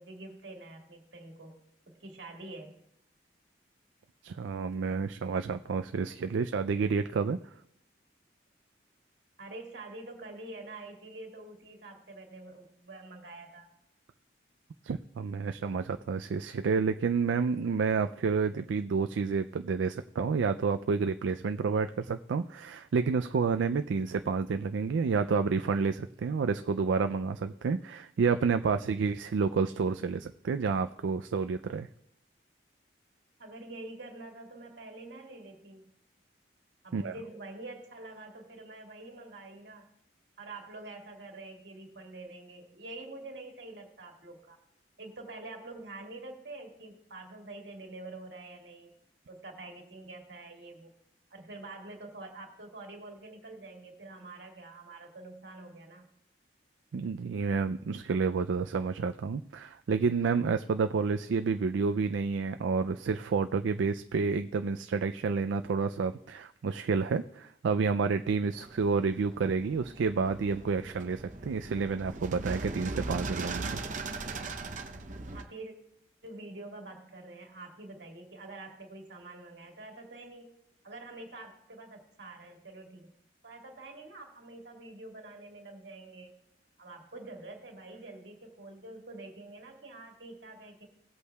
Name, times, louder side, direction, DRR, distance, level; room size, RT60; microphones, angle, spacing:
voice 1, 0.0-1.6 1.9-2.8 9.4-13.7 33.4-35.9 36.8-39.9 40.4-44.6 45.0-48.9 49.3-50.9 51.3-56.1 75.3-75.8 76.2-80.5 80.8-83.1 83.4-86.4 86.8-90.9, right 2 dB, 65° right, 2 dB, 1.9 m, -46 dB
voice 2, 4.2-7.4 14.8-31.9 36.9-37.1 56.9-73.8, right 5 dB, 85° right, 8 dB, 0.4 m, -29 dB
sound 1, 68.6-75.4, right 3 dB, 40° right, 0.7 m, -39 dB
18.5 x 8.2 x 2.3 m, 0.74 s
head